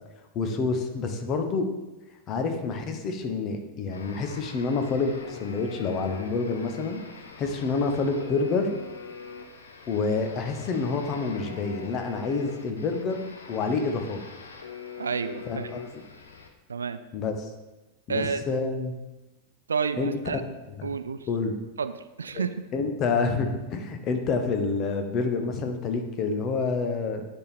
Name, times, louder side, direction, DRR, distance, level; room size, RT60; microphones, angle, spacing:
voice 1, 0.3-1.7 2.3-8.8 9.9-14.2 15.5-16.0 17.1-17.5 18.1-18.9 20.0-20.2 20.8-20.9 21.3-21.5 22.3-22.4 22.7-27.3, left 4 dB, 35° left, 6 dB, 0.9 m, -28 dB
sound 1, 3.9-16.5, left 5 dB, 70° left, 0.7 m, -43 dB
voice 2, 15.0-15.7 16.7-17.0 18.1-18.4 19.7-20.4 20.8-21.3 21.8-22.6, right 5 dB, 70° right, 11 dB, 0.3 m, -30 dB
10.0 x 3.7 x 4.3 m, 1.1 s
figure-of-eight pair, 90°, 0 cm